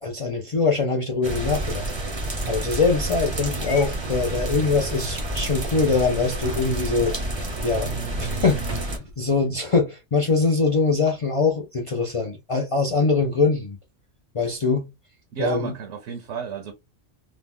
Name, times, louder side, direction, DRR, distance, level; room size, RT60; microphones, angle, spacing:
voice 1, 0.0-1.9 2.5-7.2 7.6-7.9 8.2-8.9 9.2-13.8 14.3-14.9 15.4-15.7, left 4 dB, 55° left, 0.3 m, -23 dB
sound 1, 1.2-9.0, right 1 dB, 30° right, 0.6 m, -29 dB
Purr / Meow, 3.6-5.8, left 6 dB, 90° left, 0.9 m, -42 dB
sound 2, 6.4-7.1 8.6-9.2, right 2 dB, 90° right, 1.3 m, -36 dB
voice 2, 15.3-16.7, right 7 dB, 75° right, 0.9 m, -31 dB
2.8 x 2.1 x 3.5 m
omnidirectional pair, 1.2 m